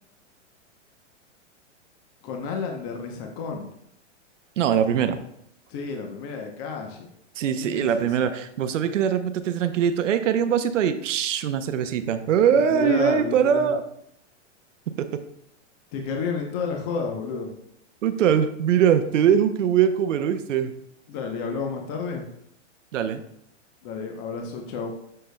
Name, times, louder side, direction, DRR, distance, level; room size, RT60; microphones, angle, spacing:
voice 1, 2.2-3.7 5.7-7.1 7.6-8.1 12.5-13.7 15.9-17.5 21.1-22.2 23.8-24.9, left 5 dB, 30° left, 2 dB, 0.9 m, -31 dB
voice 2, 4.6-5.2 7.4-13.8 15.0-15.1 18.0-20.7 22.9-23.2, right 8 dB, 80° right, 9 dB, 0.7 m, -22 dB
7.5 x 6.5 x 2.2 m, 0.74 s
hypercardioid pair, 150°, 37 cm